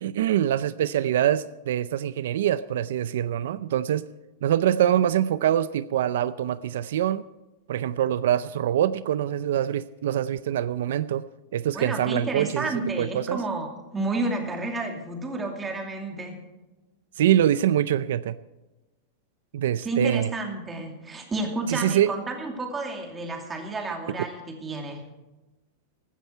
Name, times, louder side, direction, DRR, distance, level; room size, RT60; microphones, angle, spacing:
voice 1, 0.0-4.1 4.4-7.2 7.7-11.3 11.5-12.7 13.0-13.4 17.2-18.3 19.5-20.3 21.7-22.1, right 11 dB, 80° right, 15 dB, 0.5 m, -24 dB
voice 2, 11.7-16.4 19.8-25.0, right 3 dB, 15° right, 3 dB, 2.6 m, -30 dB
16.0 x 13.0 x 4.5 m, 1.1 s
supercardioid pair, 155°, 0 cm